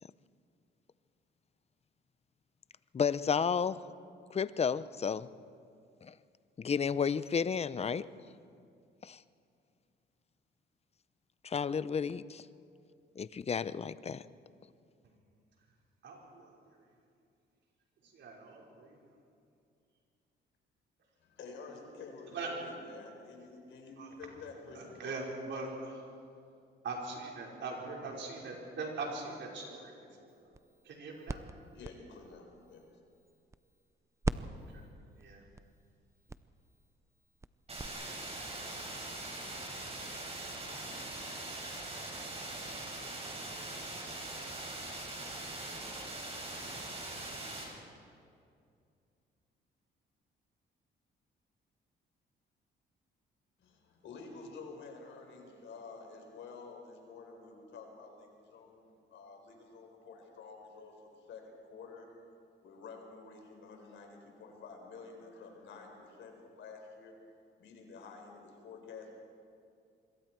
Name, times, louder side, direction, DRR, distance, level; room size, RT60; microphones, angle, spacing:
voice 1, 2.9-3.8 4.3-5.3 6.0-6.1 6.6-8.1 9.0-9.2 11.4-12.4 13.2-14.2, left 6 dB, 30° left, 16 dB, 0.6 m, -32 dB
voice 2, 16.0-16.5 18.1-19.0 22.3-22.5 24.0-24.1 24.7-26.0 26.8-30.3 30.8-31.4 34.3-34.8 35.2-35.4, right 3 dB, 65° right, -1 dB, 4.9 m, -41 dB
voice 3, 21.2-25.2 31.7-33.0 53.6-62.1 62.6-67.1 67.6-69.1, left 4 dB, 70° left, 2 dB, 4.4 m, -50 dB
sound 1, 30.3-33.9 34.2-37.9, right 3 dB, 15° right, 0.6 m, -42 dB
sound 2, 37.7-47.6, right 2 dB, 30° right, 6.1 m, -42 dB
25.5 x 22.5 x 4.6 m, 2.4 s
cardioid pair, 90°, 20 cm